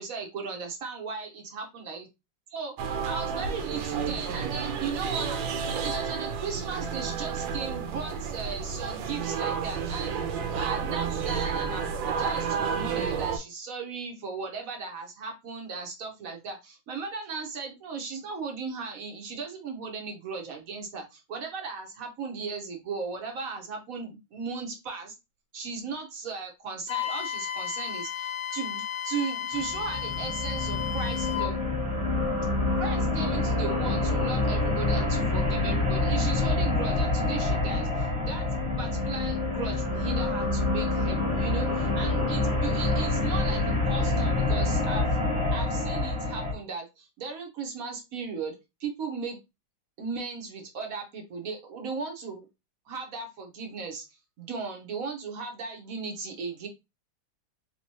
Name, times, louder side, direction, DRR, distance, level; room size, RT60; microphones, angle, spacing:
voice 1, 0.0-2.1 2.5-25.1 25.5-31.6 32.7-38.5 38.8-48.5 48.8-49.4 50.0-52.5 52.9-54.0 54.4-56.7, right 5 dB, 55° right, 3 dB, 1.2 m, -37 dB
sound 1, 2.8-13.4, right 6 dB, 80° right, 1.4 m, -31 dB
Wind instrument woodwind instrument, 26.9-31.5, left 10 dB, 75° left, 1.1 m, -33 dB
sound 2, 29.5-46.5, left 2 dB, 5° right, 1.1 m, -27 dB
3.6 x 2.9 x 2.8 m, 0.23 s
omnidirectional pair, 2.0 m